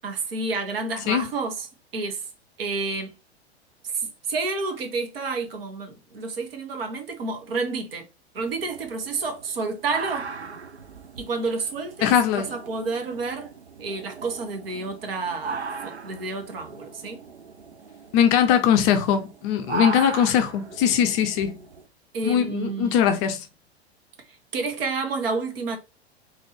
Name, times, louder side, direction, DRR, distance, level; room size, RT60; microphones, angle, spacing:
voice 1, 0.0-2.3 2.6-3.1 3.9-8.0 8.3-10.3 11.2-13.5 13.8-17.2 22.1-22.9 24.5-25.8, right 3 dB, 60° right, 1.2 m, -30 dB
sound 1, 8.4-21.8, right 4 dB, 85° right, 0.6 m, -38 dB
voice 2, 12.0-12.5 18.1-21.6 22.2-23.4, left 9 dB, 30° left, 0.5 m, -21 dB
3.8 x 2.7 x 3.2 m
figure-of-eight pair, 95°, 32 cm